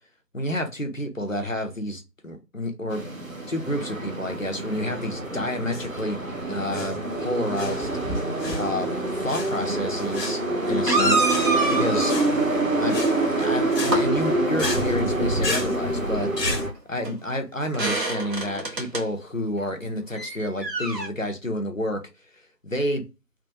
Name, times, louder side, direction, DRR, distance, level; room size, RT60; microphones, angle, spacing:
voice 1, 0.3-3.0 3.5-6.2 6.5-7.9 8.2-10.4 10.7-12.1 12.8-13.0 13.3-16.3 16.9-22.0 22.6-23.0, left 1 dB, 50° left, 0.6 m, -29 dB
sound 1, 2.9-16.7, right 2 dB, 55° right, 0.7 m, -26 dB
sound 2, 5.6-16.7, left 2 dB, 75° left, 0.9 m, -34 dB
sound 3, 9.7-9.8 10.8-12.2 13.5-14.1 16.6-16.7 17.0-17.1 17.7-19.0 20.1-21.1, right 2 dB, 75° right, 1.3 m, -26 dB
3.3 x 2.1 x 2.6 m
figure-of-eight pair, 175°, 50 cm